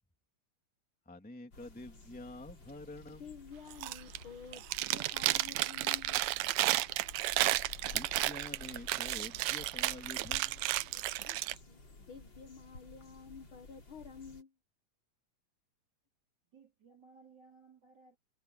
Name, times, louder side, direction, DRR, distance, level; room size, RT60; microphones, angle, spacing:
voice 1, 1.1-3.4 7.8-11.0 11.3-11.4, left 1 dB, 5° left, 2.1 m, -48 dB
sound 1, 1.5-14.4, left 2 dB, 35° left, 4.6 m, -53 dB
voice 2, 3.2-6.2 10.9-14.5, left 6 dB, 70° left, 1.3 m, -51 dB
Chewing mastication, 3.7-4.2 4.5-11.5, right 17 dB, 80° right, 1.7 m, -32 dB
voice 3, 16.5-18.2, right 5 dB, 30° right, 4.2 m, -60 dB
omnidirectional pair, 3.9 m